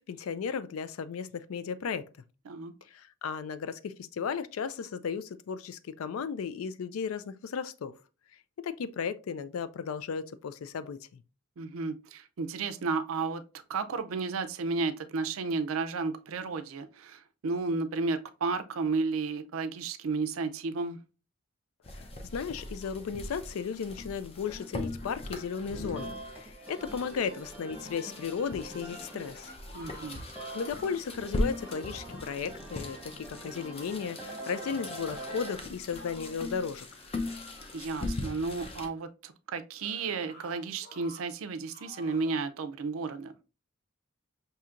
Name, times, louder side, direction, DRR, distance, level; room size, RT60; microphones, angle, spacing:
voice 1, 0.0-2.1 2.9-7.9 8.6-11.2 22.0-29.5 30.5-36.9, left 6 dB, 85° left, 0.4 m, -35 dB
voice 2, 11.6-13.4 13.7-21.0 29.7-30.2 37.7-43.3, right 4 dB, 80° right, 0.5 m, -33 dB
sound 1, 21.8-38.9, left 1 dB, 30° left, 0.6 m, -40 dB
sound 2, 25.7-35.5, right 1 dB, 5° right, 1.1 m, -45 dB
sound 3, 28.7-31.1 31.5-32.4 33.8-36.5 36.9-37.9 39.8-41.3 41.7-42.4, left 1 dB, 50° left, 1.0 m, -53 dB
5.7 x 2.7 x 2.4 m
head